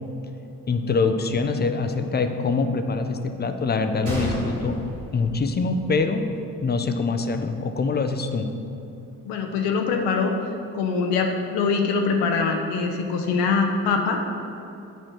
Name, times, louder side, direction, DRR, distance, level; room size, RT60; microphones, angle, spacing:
voice 1, 0.7-4.8 5.1-6.3 6.6-8.5, left 4 dB, 20° left, 7 dB, 0.7 m, -24 dB
Gunshot gunfire, 4.0-6.1 6.4-6.5 7.1-7.3, equal, 80° right, 2.0 m, -31 dB
voice 2, 9.2-10.3 10.7-14.2, left 4 dB, 60° left, 2 dB, 0.8 m, -23 dB
9.1 x 4.4 x 6.2 m, 2.8 s
figure-of-eight pair, 40°, 45 cm